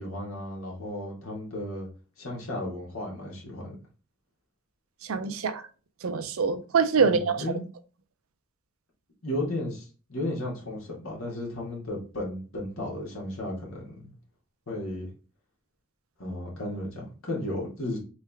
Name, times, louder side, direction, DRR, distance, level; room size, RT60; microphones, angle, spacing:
voice 1, 0.0-1.9 2.2-3.8 7.0-7.6 9.2-14.1 14.7-15.1 16.2-18.0, left 1 dB, 80° left, 1.7 m, -34 dB
voice 2, 5.0-5.6 6.0-7.4, right 5 dB, 80° right, 0.5 m, -25 dB
3.4 x 3.3 x 3.3 m
head